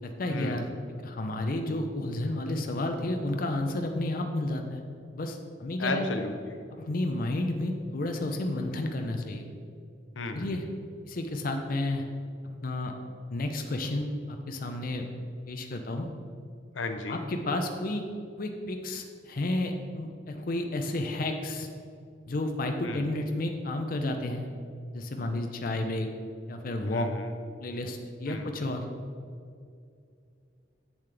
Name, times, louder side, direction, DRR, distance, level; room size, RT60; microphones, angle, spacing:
voice 1, 0.0-4.8 5.1-6.1 6.8-9.5 10.3-10.6 11.0-12.0 12.4-12.9 13.3-15.1 15.5-16.1 17.1-18.0 18.4-21.7 22.3-24.5 24.9-26.1 26.5-27.1 27.6-28.8, left 1 dB, 50° left, 4 dB, 0.6 m, -31 dB
voice 2, 5.8-6.6 10.2-10.6 16.7-17.2 22.8-23.1 26.9-27.3 28.3-28.6, left 3 dB, 90° left, 6 dB, 0.7 m, -34 dB
7.6 x 7.2 x 3.3 m, 2.4 s
head